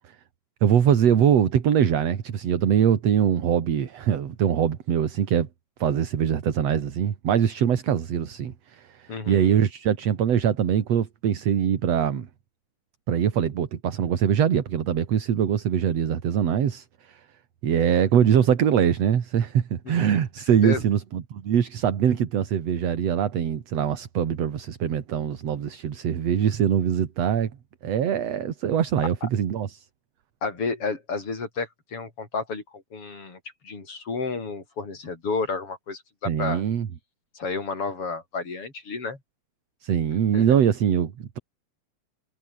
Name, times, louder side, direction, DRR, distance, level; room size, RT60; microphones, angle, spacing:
voice 1, 0.6-5.5 5.8-12.3 13.1-17.2 17.6-27.5 27.8-29.8 36.3-36.9 39.8-41.4, right 9 dB, 55° right, 2.8 m, -23 dB
voice 2, 9.1-9.5 19.8-20.1 20.6-20.8 29.2-29.3 30.4-36.6 37.3-39.2 40.3-40.6, left 4 dB, 40° left, 6.1 m, -31 dB
omnidirectional pair, 4.0 m